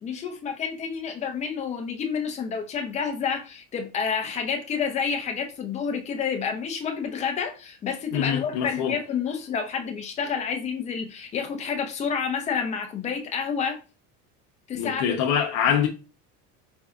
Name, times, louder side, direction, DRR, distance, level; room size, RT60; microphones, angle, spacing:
voice 1, 0.0-13.8 14.7-15.0, left 6 dB, 20° left, 0.5 m, -29 dB
voice 2, 8.1-9.0 14.7-15.9, left 8 dB, 80° left, 0.8 m, -24 dB
4.3 x 2.6 x 2.3 m
cardioid pair, 160°, 34 cm